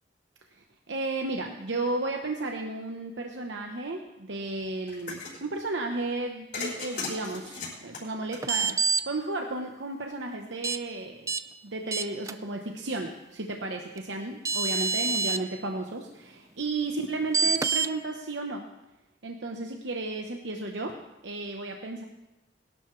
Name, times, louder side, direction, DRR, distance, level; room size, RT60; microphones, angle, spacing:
voice 1, 0.6-11.3 11.6-18.6 19.2-21.0 21.2-22.0, right 2 dB, 80° right, 3 dB, 1.0 m, -33 dB
sound 1, 4.9-5.4 6.5-9.0, left 3 dB, 50° left, 5.4 m, -37 dB
sound 2, 8.4-9.0 10.6-10.8 11.3-11.4 11.9-12.3 14.0-14.1 14.4-15.4 17.3-17.9, right 4 dB, 15° right, 0.3 m, -26 dB
21.5 x 12.0 x 3.2 m, 1.0 s
head